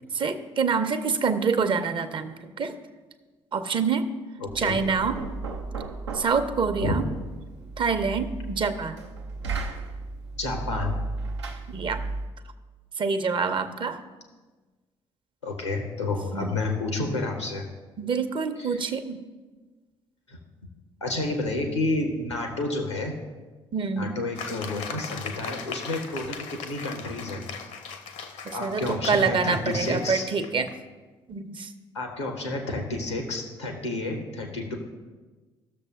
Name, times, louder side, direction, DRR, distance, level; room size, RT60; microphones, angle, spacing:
voice 1, 0.1-2.8 3.5-4.1 4.6-5.2 6.1-7.1 7.8-9.0 11.7-12.0 13.0-14.0 16.3-16.5 18.0-19.2 23.7-24.1 28.4-30.7 31.3-31.7, right 5 dB, 35° right, 10 dB, 0.7 m, -26 dB
voice 2, 4.4-4.8 6.8-7.0 10.4-11.0 15.4-17.6 18.6-18.8 20.3-20.4 21.0-23.1 24.0-27.4 28.5-30.3 31.9-34.7, left 2 dB, 85° left, 3 dB, 1.0 m, -30 dB
Knock, 4.5-12.4, right 3 dB, 80° right, 0.6 m, -35 dB
sound 1, 24.4-30.8, left 6 dB, 55° left, 0.7 m, -39 dB
16.0 x 6.7 x 2.4 m, 1.3 s
figure-of-eight pair, 45°, 15 cm